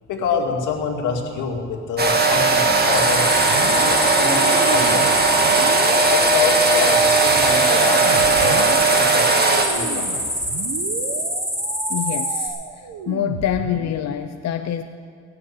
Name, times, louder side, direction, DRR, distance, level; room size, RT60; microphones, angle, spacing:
voice 1, 0.1-3.3 3.6-5.4 6.1-9.3 9.7-10.3, left 5 dB, 85° left, 1 dB, 2.1 m, -26 dB
sound 1, 2.0-9.7, right 3 dB, 30° right, 1.8 m, -17 dB
sound 2, 2.9-12.5, equal, 10° right, 4.5 m, -26 dB
sound 3, 3.5-14.0, right 7 dB, 85° right, 1.0 m, -33 dB
voice 2, 11.9-12.5 13.1-14.8, left 10 dB, 60° left, 7 dB, 0.7 m, -25 dB
18.0 x 6.9 x 9.5 m, 2.1 s
cardioid pair, 90°, 30 cm